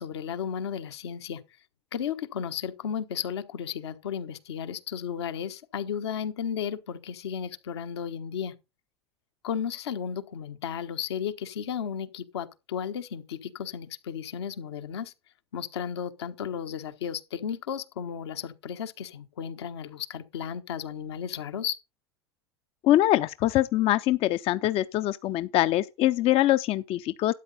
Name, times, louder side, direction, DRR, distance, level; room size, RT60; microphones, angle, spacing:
voice 1, 0.0-1.4 1.9-8.5 9.4-15.1 15.5-21.8, left 8 dB, 75° left, 1.3 m, -34 dB
voice 2, 22.8-27.3, left 14 dB, 45° left, 0.6 m, -23 dB
12.5 x 9.1 x 4.0 m
hypercardioid pair, 90°, 14 cm